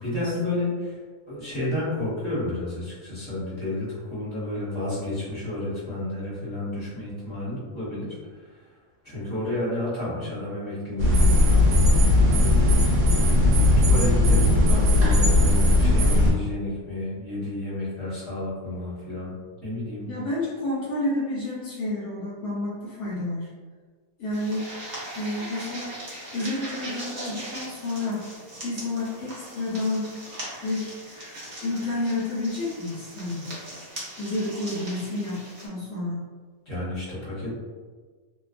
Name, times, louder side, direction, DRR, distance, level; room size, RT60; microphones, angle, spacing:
voice 1, 0.0-1.0 1.3-8.1 8.5-8.6 9.0-12.8 13.5-20.1 36.7-37.6, left 1 dB, 20° left, -10 dB, 1.0 m, -31 dB
sound 1, 11.0-16.3, left 1 dB, 65° right, 1.0 m, -18 dB
voice 2, 20.1-23.5 24.2-24.7 25.1-26.0 26.3-28.3 28.6-30.1 30.6-31.0 31.6-33.5 34.2-36.2, left 2 dB, 75° left, -8 dB, 1.0 m, -30 dB
sound 2, 24.3-35.7, right 1 dB, 40° right, 0.7 m, -40 dB
2.5 x 2.2 x 2.4 m, 1.5 s
omnidirectional pair, 1.5 m